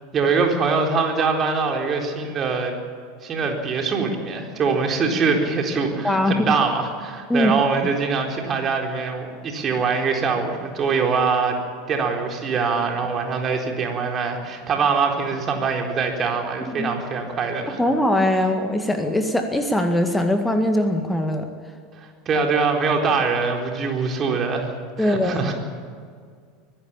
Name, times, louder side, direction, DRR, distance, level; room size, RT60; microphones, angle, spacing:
voice 1, 0.1-2.7 3.2-11.6 11.9-17.8 22.3-25.5, right 5 dB, 30° right, 2 dB, 4.2 m, -23 dB
voice 2, 6.0-6.5 7.3-7.5 16.7-16.9 17.8-21.5 25.0-25.5, left 1 dB, 5° left, 5 dB, 1.9 m, -21 dB
24.5 x 16.0 x 7.3 m, 2.1 s
figure-of-eight pair, 75°, 0 cm